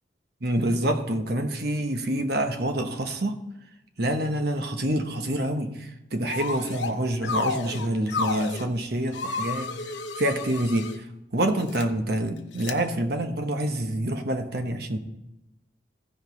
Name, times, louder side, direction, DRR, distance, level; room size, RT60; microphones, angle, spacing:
voice 1, 0.4-3.4 4.0-10.9 11.3-15.0, right 1 dB, 60° right, 6 dB, 1.1 m, -27 dB
sound 1, 6.3-6.9 7.2-8.7 9.1-11.0 11.6-11.8 12.6-12.7, left 4 dB, 85° left, 0.8 m, -31 dB
15.5 x 5.3 x 4.0 m, 0.92 s
head